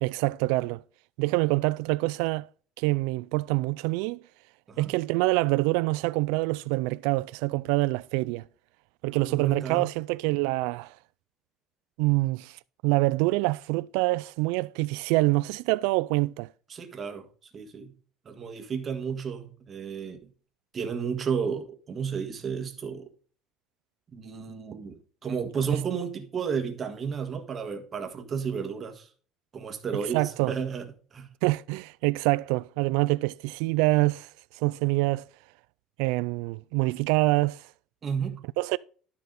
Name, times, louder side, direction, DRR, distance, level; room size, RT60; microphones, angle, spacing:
voice 1, 0.0-0.8 1.2-2.5 2.8-4.2 4.8-8.4 9.0-11.0 12.0-16.5 30.1-30.5 31.4-34.3 34.5-35.3 36.0-37.6 38.6-38.8, right 22 dB, 85° right, 0.3 m, -26 dB
voice 2, 9.2-9.9 16.7-17.3 17.5-17.9 18.2-20.3 20.7-23.1 24.1-29.1 29.5-30.9 31.1-31.3 38.0-38.4, right 6 dB, 25° right, 1.6 m, -32 dB
12.5 x 5.7 x 3.8 m
cardioid pair, 170°, 0 cm